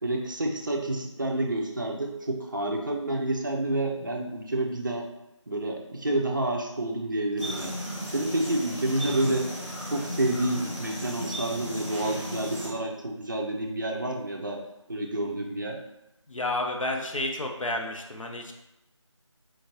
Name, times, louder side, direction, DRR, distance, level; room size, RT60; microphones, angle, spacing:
voice 1, 0.0-5.1 5.5-7.7 8.1-9.5 9.9-14.6 14.9-15.8, right 1 dB, 40° right, 0 dB, 0.5 m, -29 dB
sound 1, 7.4-12.7, equal, 5° left, 1.1 m, -36 dB
voice 2, 16.3-18.5, left 2 dB, 85° left, 2 dB, 0.7 m, -31 dB
4.4 x 2.6 x 2.9 m, 0.93 s
figure-of-eight pair, 170°, 16 cm